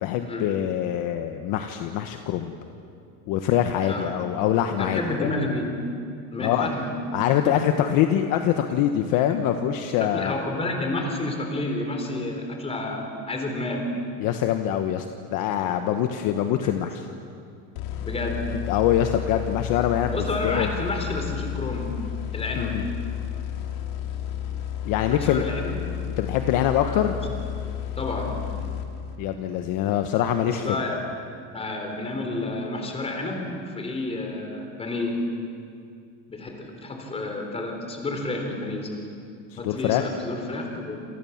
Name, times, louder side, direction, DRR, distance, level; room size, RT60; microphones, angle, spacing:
voice 1, 0.0-2.5 3.3-5.3 6.4-6.7 7.1-10.4 14.2-15.1 15.3-17.0 18.7-20.1 20.4-20.7 22.5-22.8 24.8-25.5 26.2-27.1 29.2-30.7 39.5-40.1, left 11 dB, 45° left, 6 dB, 1.3 m, -24 dB
voice 2, 3.8-4.2 4.8-5.7 6.3-6.9 7.4-7.6 9.3-9.4 10.0-13.9 16.6-16.7 18.0-18.4 20.1-21.9 22.3-22.8 25.1-25.8 26.8-27.2 28.0-28.4 30.4-31.0 31.5-35.2 36.3-39.0 39.6-41.0, left 2 dB, 15° left, 3 dB, 3.8 m, -30 dB
sound 1, 17.8-29.4, left 10 dB, 75° left, 3.1 m, -32 dB
28.0 x 28.0 x 7.3 m, 2.4 s
cardioid pair, 175°, 45 cm